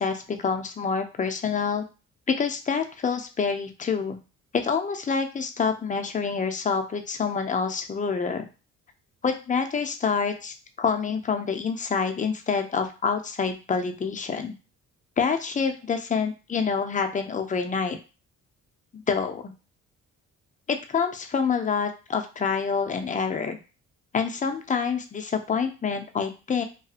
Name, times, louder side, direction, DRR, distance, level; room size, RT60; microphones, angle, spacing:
voice 1, 0.0-1.8 2.3-4.2 4.5-8.5 9.2-14.5 15.2-18.0 18.9-19.5 20.7-23.6 24.1-26.6, left 5 dB, 25° left, 6 dB, 0.4 m, -27 dB
2.7 x 2.4 x 2.4 m, 0.32 s
cardioid pair, 90°, 30 cm